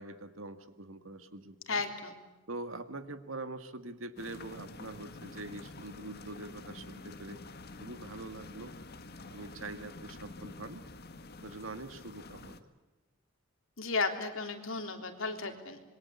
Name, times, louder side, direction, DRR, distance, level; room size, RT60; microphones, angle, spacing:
voice 1, 0.0-1.8 2.5-7.4 7.8-8.7 9.3-10.8 11.3-12.6, right 2 dB, 80° right, 10 dB, 2.0 m, -44 dB
voice 2, 1.7-2.1 13.8-15.8, left 4 dB, 80° left, 4 dB, 3.6 m, -34 dB
sound 1, 4.2-12.6, left 2 dB, 50° left, 1.8 m, -48 dB
26.5 x 22.5 x 8.4 m, 1.2 s
head